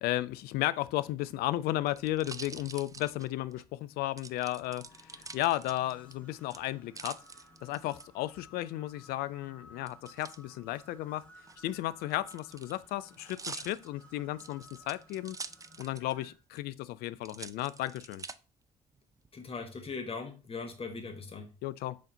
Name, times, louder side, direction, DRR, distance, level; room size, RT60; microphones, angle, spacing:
voice 1, 0.0-7.2 7.6-11.2 11.6-15.4 15.8-18.2 21.6-22.0, left 15 dB, 60° left, 0.4 m, -34 dB
sound 1, 1.1-3.6 4.2-6.1 6.5-8.0 9.9-10.4 11.3-16.2 16.6-16.7 17.2-18.4 19.0-19.5, right 4 dB, 20° right, 0.5 m, -46 dB
sound 2, 4.5-16.4, left 1 dB, 5° left, 1.9 m, -58 dB
voice 2, 19.3-21.5, left 4 dB, 30° left, 1.5 m, -40 dB
6.3 x 4.1 x 3.9 m
figure-of-eight pair, 50°, 18 cm